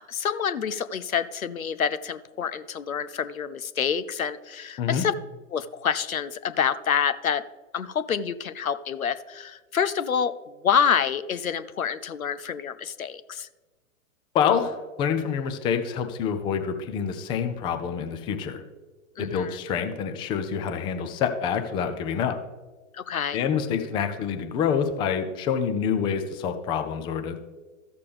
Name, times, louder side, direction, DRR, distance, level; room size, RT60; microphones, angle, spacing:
voice 1, 0.0-5.1 5.5-7.4 7.7-13.5 19.2-19.6 22.9-23.4, left 7 dB, 85° left, 13 dB, 0.6 m, -27 dB
voice 2, 14.3-18.6 19.2-22.4 23.3-27.4, left 7 dB, 10° left, 7 dB, 0.4 m, -27 dB
13.5 x 6.7 x 3.3 m, 1.2 s
figure-of-eight pair, 105°, 41 cm